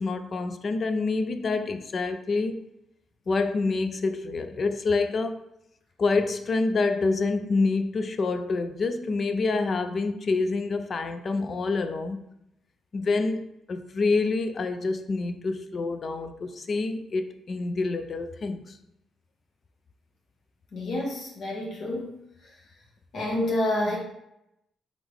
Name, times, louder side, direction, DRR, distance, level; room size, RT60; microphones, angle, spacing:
voice 1, 0.0-2.6 3.3-5.4 6.0-12.2 12.9-18.8, left 3 dB, 45° left, 0.4 m, -27 dB
voice 2, 20.7-22.1 23.1-24.0, left 1 dB, 65° left, 1.3 m, -28 dB
3.6 x 3.5 x 3.5 m
cardioid pair, 90°, 0 cm